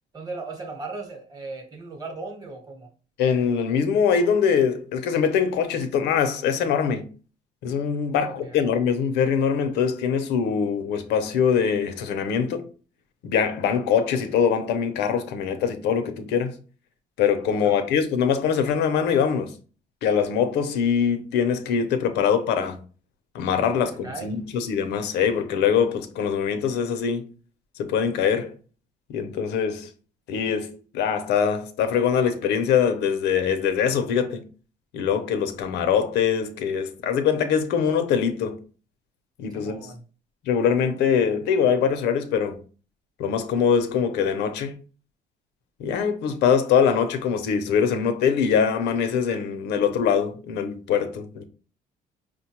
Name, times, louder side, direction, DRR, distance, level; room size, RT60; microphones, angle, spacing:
voice 1, 0.1-2.9 8.1-8.6 13.7-13.8 17.6-17.8 23.7-24.5 39.5-40.0, right 3 dB, 20° right, 0.9 m, -37 dB
voice 2, 3.2-7.1 7.6-12.6 13.2-16.6 17.2-19.5 20.0-22.8 23.3-27.3 27.8-28.5 29.1-29.9 30.3-34.4 34.9-38.6 39.4-39.8 40.4-42.6 43.2-44.8 45.8-51.5, left 7 dB, 85° left, 0.6 m, -23 dB
5.0 x 2.1 x 2.9 m
cardioid pair, 110°, 17 cm